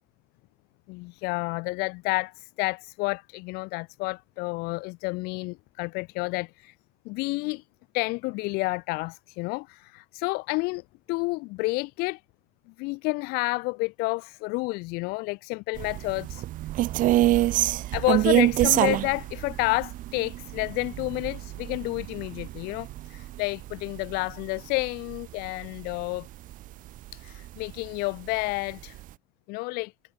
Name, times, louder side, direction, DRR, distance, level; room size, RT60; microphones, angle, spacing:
voice 1, 0.9-6.7 7.0-7.7 7.9-12.2 12.8-16.4 17.9-26.3 27.1-29.0 29.5-29.9, left 25 dB, 65° left, 0.6 m, -30 dB
sound 1, 15.8-26.2 26.5-26.7 27.1-27.9 28.3-28.4 28.7-29.1, right 15 dB, 55° right, 0.8 m, -26 dB
supercardioid pair, 90°, 17 cm